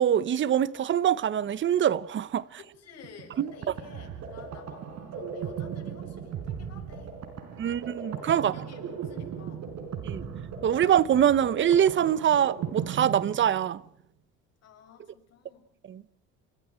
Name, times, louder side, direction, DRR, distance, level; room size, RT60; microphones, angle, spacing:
voice 1, 0.0-2.4 3.4-3.5 7.6-8.5 10.0-10.2 10.6-13.8 15.9-16.0, right 9 dB, 40° right, 0.8 m, -24 dB
voice 2, 2.6-7.2 7.6-7.9 8.4-9.7 14.6-15.6, left 6 dB, 55° left, 6.7 m, -52 dB
sound 1, 3.0-13.9, right 7 dB, 60° right, 4.6 m, -37 dB
29.5 x 26.5 x 4.5 m
cardioid pair, 115°, 30 cm